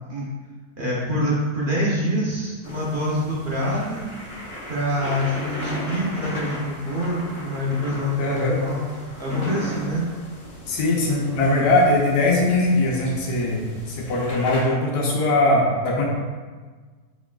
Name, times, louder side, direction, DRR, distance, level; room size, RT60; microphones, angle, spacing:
voice 1, 0.8-4.1 4.7-8.8 9.2-10.0, equal, 50° right, -5 dB, 0.7 m, -25 dB
sound 1, 2.6-14.6, left 1 dB, 45° left, 1.1 m, -36 dB
voice 2, 8.2-8.6 10.7-16.0, left 2 dB, 80° left, -3 dB, 1.3 m, -21 dB
4.6 x 4.6 x 2.3 m, 1.4 s
omnidirectional pair, 1.7 m